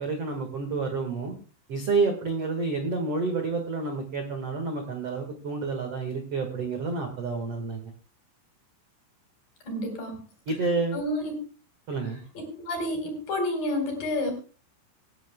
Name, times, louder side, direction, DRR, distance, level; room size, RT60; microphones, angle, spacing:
voice 1, 0.0-1.3 1.7-7.9 10.5-11.0 11.9-12.2, right 4 dB, 55° right, 4 dB, 1.7 m, -29 dB
voice 2, 9.7-10.1 10.9-11.4 12.7-14.3, left 1 dB, 50° left, 3 dB, 5.7 m, -29 dB
26.5 x 11.0 x 2.3 m, 0.37 s
omnidirectional pair, 5.5 m